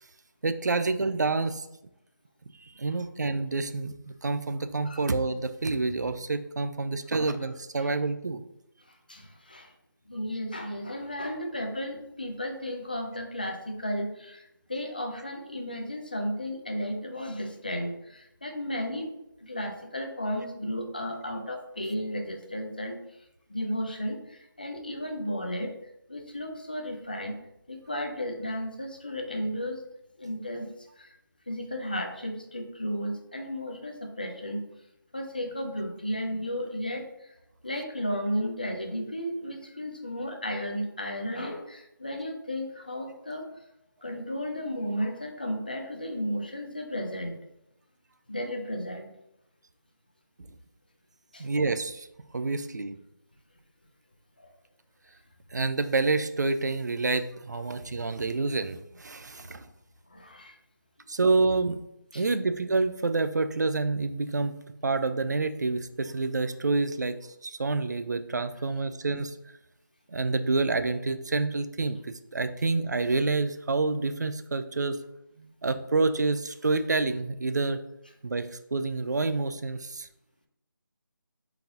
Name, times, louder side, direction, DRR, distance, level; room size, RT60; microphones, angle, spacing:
voice 1, 0.4-1.7 2.6-8.4 51.4-52.1 52.3-53.0 55.5-59.6 61.1-61.8 62.1-64.5 64.8-67.2 67.4-69.3 70.1-72.0 72.3-75.0 75.4-77.8 78.2-80.1, right 3 dB, 55° right, 10 dB, 0.4 m, -28 dB
voice 2, 9.1-9.7 10.1-14.4 14.7-19.1 19.4-23.0 23.5-25.7 26.1-27.4 27.7-29.8 30.2-30.7 31.0-31.1 31.5-34.6 35.1-37.1 37.6-43.4 44.0-47.4 48.3-49.1 51.3-51.4 57.6-57.8 60.1-60.6 62.1-62.2, equal, 25° left, 3 dB, 0.4 m, -34 dB
3.9 x 3.8 x 2.9 m, 0.83 s
figure-of-eight pair, 175°, 11 cm